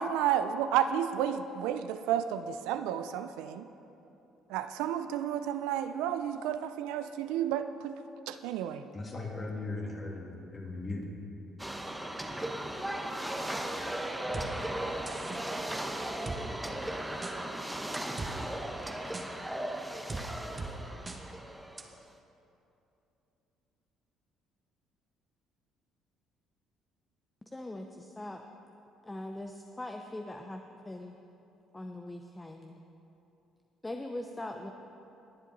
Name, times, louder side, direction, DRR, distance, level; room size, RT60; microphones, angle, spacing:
voice 1, 0.0-3.7 4.5-7.9 8.3-8.8, right 10 dB, 80° right, 10 dB, 0.4 m, -31 dB
voice 2, 8.9-11.1, left 2 dB, 35° left, -2 dB, 2.8 m, -38 dB
sound 1, 11.6-22.0, right 1 dB, 5° right, 0.9 m, -37 dB
sound 2, 14.3-14.5 15.1-15.4 16.3-16.4 17.2-17.3 17.9-18.3 19.1-19.3 20.1-20.2 20.6-20.7 21.1-21.2 21.8-21.9, right 3 dB, 25° right, 1.3 m, -38 dB
voice 3, 27.5-28.4 29.0-31.1 31.7-32.8 33.8-34.7, left 1 dB, 15° left, 4 dB, 0.7 m, -41 dB
20.0 x 7.4 x 4.0 m, 2.9 s
supercardioid pair, 65°, 0 cm